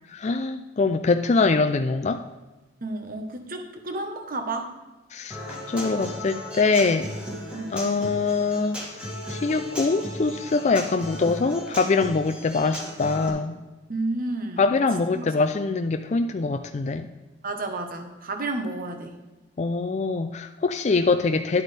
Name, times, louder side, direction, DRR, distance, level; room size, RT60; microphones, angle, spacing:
voice 1, 0.1-2.2 5.1-5.4 5.7-7.1 7.7-13.6 14.6-17.1 19.6-21.6, left 4 dB, 40° left, 7 dB, 0.4 m, -23 dB
voice 2, 2.8-4.7 7.5-7.7 13.9-14.6 15.1-15.3 17.4-19.1, right 2 dB, 50° right, 5 dB, 1.2 m, -31 dB
Human voice / Acoustic guitar, 5.3-13.3, equal, 5° right, 2.2 m, -36 dB
11.0 x 8.2 x 3.4 m, 1.1 s
head